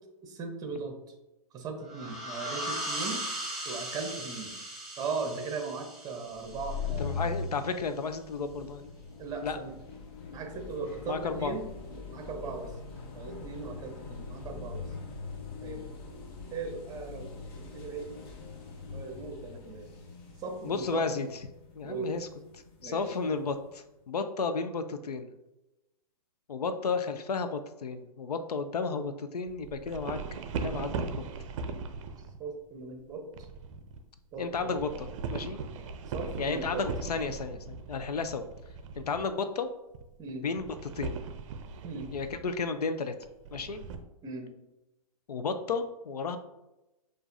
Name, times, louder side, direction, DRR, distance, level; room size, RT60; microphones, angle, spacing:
voice 1, 0.2-1.0 1.5-3.2 3.6-4.5 5.0-7.3 9.2-9.8 10.3-12.7 13.1-14.9 15.6-15.9 16.5-17.3 17.6-18.1 18.8-19.9 20.4-21.1 21.8-22.2 22.8-23.0 32.4-33.5 34.3-34.7 36.1-36.8 40.2-40.5 41.8-42.1 44.2-44.5, right 4 dB, 20° right, 4 dB, 0.8 m, -38 dB
sound 1, 1.9-7.2, right 1 dB, ahead, 1.5 m, -38 dB
sound 2, 6.3-23.7, left 5 dB, 40° left, 0.9 m, -42 dB
voice 2, 7.0-8.9 9.4-9.6 11.1-11.6 20.6-21.4 21.7-22.3 22.8-25.3 26.5-30.2 30.6-31.1 34.4-35.6 36.4-38.5 39.0-39.7 40.3-41.1 42.1-43.1 43.5-43.8 45.3-46.4, left 4 dB, 80° left, 9 dB, 0.5 m, -33 dB
sound 3, 29.5-32.4 33.3-34.0 34.4-39.2 39.9-40.3 40.6-42.5 43.2-44.0, right 4 dB, 55° right, 0.5 m, -39 dB
6.6 x 2.5 x 2.6 m, 0.97 s
hypercardioid pair, 115°, 20 cm